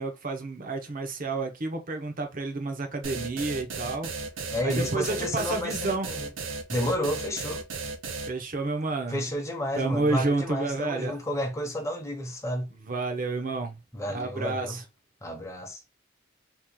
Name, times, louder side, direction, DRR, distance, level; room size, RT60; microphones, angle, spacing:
voice 1, 0.0-4.1 4.6-6.1 8.3-9.3 9.8-11.2 12.7-13.8 14.1-14.8, right 3 dB, 45° right, 0.8 m, -30 dB
sound 1, 3.0-8.3, right 4 dB, 85° right, 0.7 m, -35 dB
voice 2, 4.5-6.3 6.7-7.6 9.1-12.7 13.9-14.8 15.2-15.8, equal, 15° left, 0.9 m, -31 dB
3.0 x 2.4 x 3.6 m
head